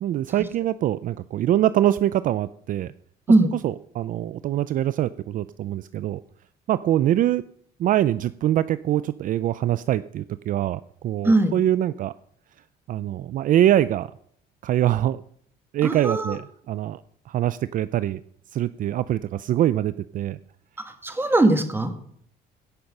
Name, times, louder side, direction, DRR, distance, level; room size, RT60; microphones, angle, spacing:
voice 1, 0.0-2.9 3.6-6.2 6.7-7.4 7.8-12.1 12.9-14.1 14.6-15.2 15.7-17.0 17.3-18.2 18.5-20.4, right 12 dB, 55° right, 16 dB, 0.4 m, -23 dB
voice 2, 15.8-16.3 20.9-21.9, right 2 dB, 15° right, 7 dB, 1.9 m, -20 dB
16.5 x 5.9 x 5.4 m, 0.66 s
cardioid pair, 110°, 17 cm